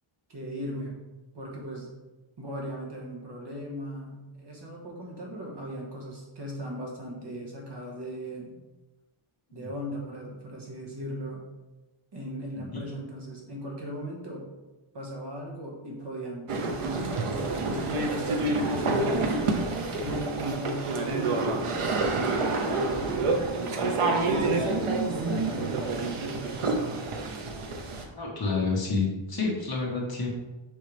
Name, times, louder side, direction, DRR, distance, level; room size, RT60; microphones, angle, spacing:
voice 1, 0.3-0.9 1.3-1.9 2.4-8.5 9.5-11.4 12.1-14.5 14.9-19.3 20.0-21.5 22.6-23.3 24.2-27.0, equal, 55° right, -2 dB, 1.7 m, -38 dB
sound 1, 16.5-28.0, right 3 dB, 90° right, 1.0 m, -28 dB
voice 2, 28.1-30.3, left 4 dB, 45° left, -3 dB, 1.8 m, -29 dB
6.7 x 5.6 x 3.5 m, 1.1 s
wide cardioid pair, 180°, 50 cm